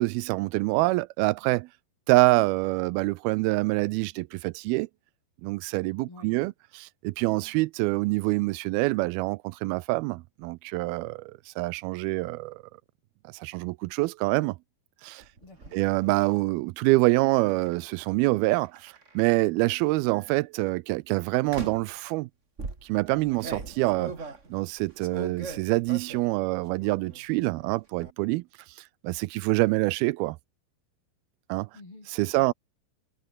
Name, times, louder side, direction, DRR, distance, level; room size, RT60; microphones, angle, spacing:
voice 1, 0.0-1.7 2.1-4.9 5.4-12.6 13.3-14.6 15.0-15.2 15.7-22.3 22.8-28.4 29.0-30.4 31.5-31.7 32.1-32.5, right 21 dB, 80° right, 2.4 m, -26 dB
voice 2, 6.1-6.5 15.4-15.9 31.7-32.1 32.4-32.5, left 2 dB, 30° left, 7.2 m, -49 dB
sound 1, 15.2-15.8 17.5-17.7 18.5-19.3 20.1-20.4 21.5-22.0 22.6-26.3 26.7-27.2 27.5-28.1, right 3 dB, 20° right, 2.3 m, -40 dB
omnidirectional pair, 4.5 m